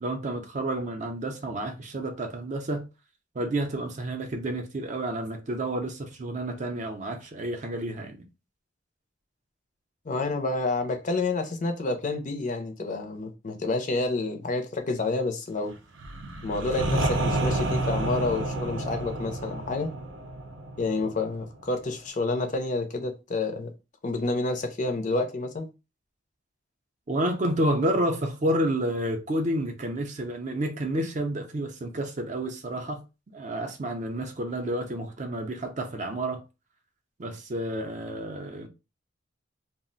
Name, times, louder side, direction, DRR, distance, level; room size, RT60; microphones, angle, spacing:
voice 1, 0.0-2.8 3.3-8.2 27.1-33.0 33.3-36.4 37.2-38.7, right 1 dB, 40° right, 0.5 m, -30 dB
voice 2, 10.0-15.7 16.4-19.9 20.8-23.7 24.0-25.7, left 3 dB, 40° left, 0.5 m, -29 dB
sound 1, 16.0-21.7, right 2 dB, 85° right, 0.6 m, -30 dB
2.4 x 2.0 x 3.8 m
head